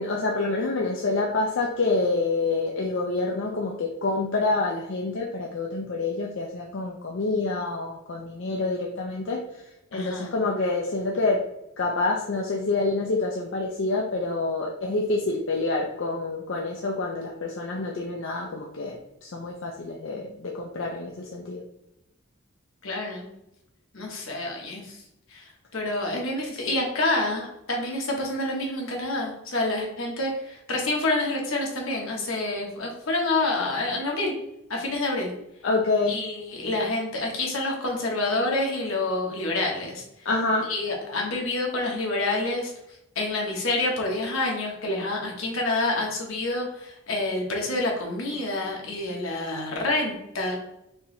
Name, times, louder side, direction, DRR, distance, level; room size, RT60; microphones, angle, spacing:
voice 1, 0.0-9.4 9.9-11.4 11.8-19.0 19.2-21.6 35.6-36.2 40.3-40.7, left 3 dB, 60° left, -1 dB, 0.5 m, -27 dB
voice 2, 9.9-10.4 22.8-23.3 23.9-25.0 25.3-34.3 34.7-35.3 36.1-40.0 40.6-42.7 43.1-50.6, left 2 dB, 80° left, 0 dB, 1.1 m, -28 dB
4.4 x 2.9 x 3.2 m, 0.87 s
head